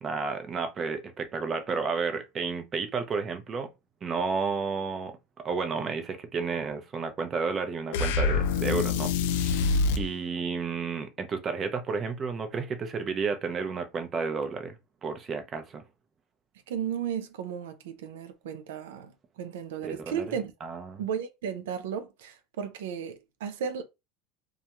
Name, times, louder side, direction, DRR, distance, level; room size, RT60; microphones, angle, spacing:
voice 1, 0.0-3.7 4.0-5.2 5.4-9.7 10.0-14.8 15.0-15.8 19.8-21.0, right 5 dB, 30° right, 0.6 m, -32 dB
sound 1, 7.9-10.1, left 4 dB, 80° left, 0.3 m, -25 dB
voice 2, 16.7-20.5 21.0-23.8, right 8 dB, 90° right, 0.5 m, -34 dB
2.4 x 2.2 x 2.9 m
supercardioid pair, 120°, 0 cm